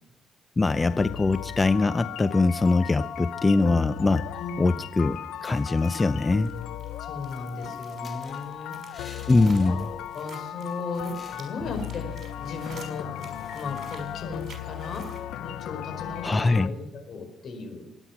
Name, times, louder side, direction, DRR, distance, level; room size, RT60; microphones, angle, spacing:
voice 1, 0.6-4.3 4.6-6.5 9.3-9.9 16.2-16.7, left 3 dB, 25° left, 13 dB, 0.6 m, -22 dB
sound 1, 0.7-16.7, left 11 dB, 90° left, 0.7 m, -37 dB
voice 2, 4.4-4.8 7.0-12.0 12.4-13.1 13.5-15.0 15.4-17.8, left 3 dB, 60° left, 6 dB, 4.8 m, -36 dB
sound 2, 5.4-6.1 6.4-6.5 6.8-10.2 10.5-10.6 11.1-11.9, left 3 dB, 40° left, 4.3 m, -49 dB
sound 3, 5.8-15.2, right 5 dB, 55° right, 6.0 m, -51 dB
23.5 x 9.9 x 6.0 m, 0.91 s
cardioid pair, 90°, 0 cm